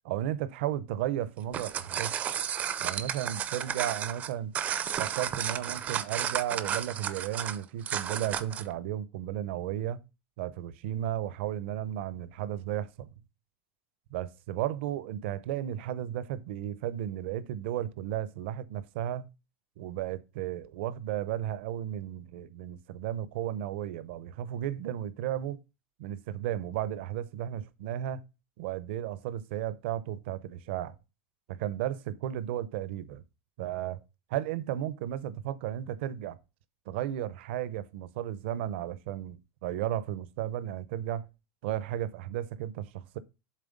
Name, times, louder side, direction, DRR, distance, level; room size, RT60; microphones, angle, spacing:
voice 1, 0.0-2.1 2.8-4.5 5.0-10.0 10.4-13.1 14.1-19.3 19.8-25.6 26.0-28.2 28.6-30.9 31.5-33.2 33.6-34.0 34.3-36.4 36.9-41.3 41.6-43.2, right 11 dB, 60° right, 0.6 m, -34 dB
sound 1, 1.4-8.7, right 9 dB, 20° right, 0.4 m, -33 dB
7.5 x 3.9 x 5.1 m
supercardioid pair, 170°, 7 cm